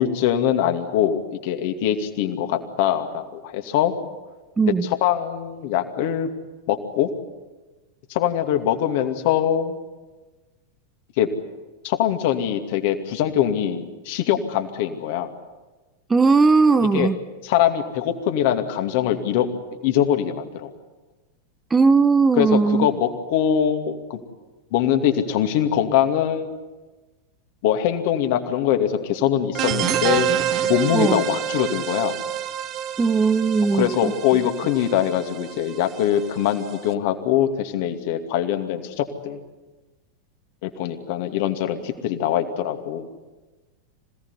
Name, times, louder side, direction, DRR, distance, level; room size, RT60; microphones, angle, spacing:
voice 1, 0.0-3.9 4.8-6.3 6.7-7.1 8.1-9.8 11.2-11.3 11.8-15.3 16.9-17.1 17.4-19.5 19.8-20.7 22.4-24.2 24.7-26.6 27.6-32.2 33.7-39.4 40.6-43.1, left 10 dB, 50° left, 6 dB, 2.5 m, -23 dB
voice 2, 4.6-4.9 16.1-17.2 21.7-22.9 30.9-31.2 33.0-34.1, right 4 dB, 15° right, 13 dB, 0.7 m, -18 dB
sound 1, 29.5-36.9, right 10 dB, 35° right, 1.3 m, -28 dB
26.5 x 17.5 x 9.8 m, 1.2 s
figure-of-eight pair, 90°, 0 cm